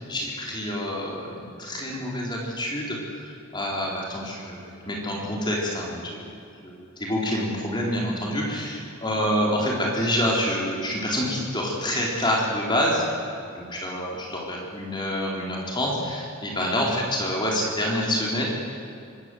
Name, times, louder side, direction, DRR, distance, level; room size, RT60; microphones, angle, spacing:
voice 1, 0.0-6.2 6.6-13.1 13.5-18.4, equal, 20° left, -2 dB, 4.0 m, -27 dB
25.0 x 14.5 x 9.3 m, 2.7 s
head